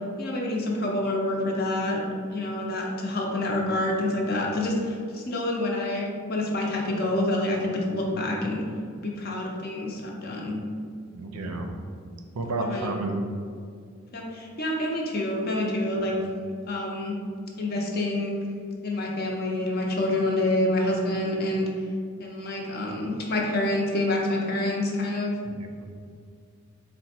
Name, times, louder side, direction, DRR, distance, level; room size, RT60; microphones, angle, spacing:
voice 1, 0.2-2.0 2.3-8.6 9.0-10.6 12.6-13.0 14.1-16.1 16.7-17.2 17.6-18.3 18.8-21.7 22.2-25.3, left 1 dB, 45° left, -1 dB, 0.6 m, -27 dB
voice 2, 11.1-11.8 12.3-13.2 25.4-26.1, right 2 dB, 90° right, 4 dB, 0.5 m, -32 dB
4.0 x 2.1 x 4.2 m, 2.2 s
head